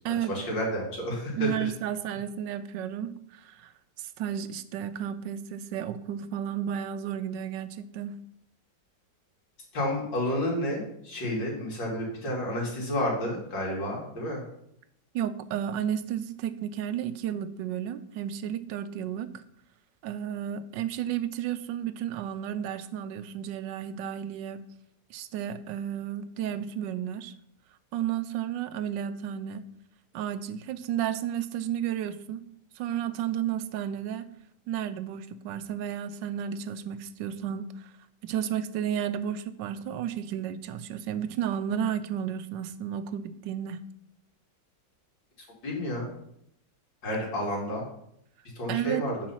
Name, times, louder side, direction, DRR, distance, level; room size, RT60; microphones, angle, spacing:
voice 1, 0.2-1.7 9.7-14.4 45.6-46.1 47.0-47.8 48.6-49.1, left 1 dB, 85° left, -3 dB, 3.0 m, -30 dB
voice 2, 1.3-3.7 4.0-8.2 15.1-19.3 20.0-24.6 25.1-27.3 27.9-29.6 30.1-32.4 32.8-34.3 34.7-37.9 38.2-43.8 48.7-49.0, right 9 dB, 90° right, 13 dB, 1.3 m, -32 dB
7.5 x 4.8 x 5.6 m, 0.73 s
omnidirectional pair, 1.9 m